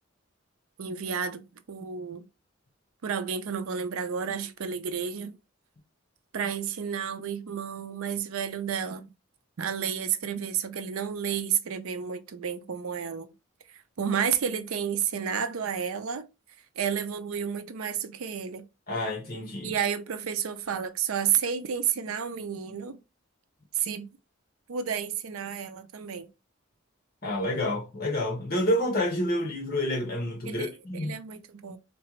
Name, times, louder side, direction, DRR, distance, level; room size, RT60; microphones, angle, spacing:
voice 1, 0.8-2.3 3.0-5.3 6.3-9.1 9.6-13.3 14.0-16.3 16.8-18.6 19.6-23.0 23.8-24.1 24.7-26.3 30.4-31.8, right 7 dB, 80° right, 0.5 m, -31 dB
voice 2, 18.9-19.7 27.2-31.2, left 1 dB, 45° left, 1.3 m, -29 dB
3.3 x 3.0 x 3.0 m
head